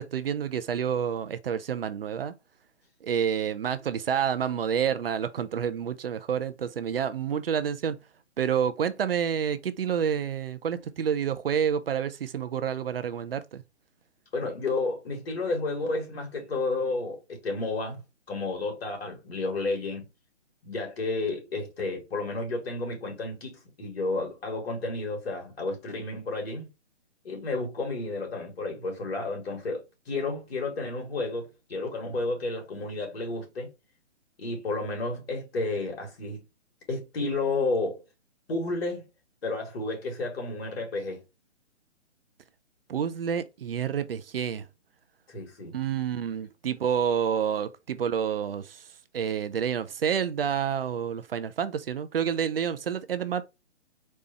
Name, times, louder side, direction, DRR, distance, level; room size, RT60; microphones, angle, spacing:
voice 1, 0.0-2.3 3.0-8.0 8.4-13.6 42.9-44.7 45.7-48.8 49.1-53.4, right 8 dB, 55° right, 0.5 m, -28 dB
voice 2, 14.3-18.0 18.3-20.1 20.6-26.7 27.2-29.8 30.1-33.7 34.4-36.4 36.9-38.0 38.5-39.0 39.4-41.2 45.3-45.8, left 3 dB, 55° left, 2.5 m, -31 dB
4.2 x 3.3 x 3.0 m
hypercardioid pair, 145°, 35 cm